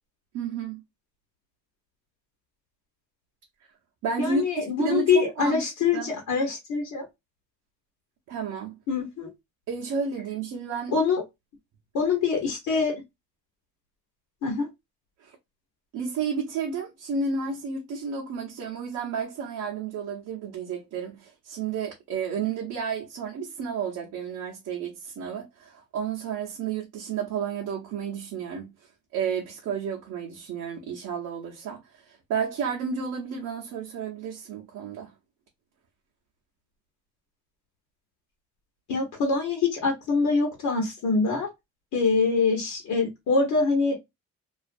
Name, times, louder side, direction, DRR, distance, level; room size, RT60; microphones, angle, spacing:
voice 1, 0.3-0.8 4.0-5.6 5.9-6.1 8.3-8.8 9.7-10.9 15.2-15.4 15.9-35.1, right 6 dB, 80° right, 0.7 m, -31 dB
voice 2, 4.2-7.0 8.9-9.3 10.9-11.2 11.9-12.9 14.4-14.7 38.9-41.5 41.9-43.9, left 4 dB, 80° left, 1.0 m, -24 dB
2.4 x 2.4 x 2.5 m
cardioid pair, 90°, 30 cm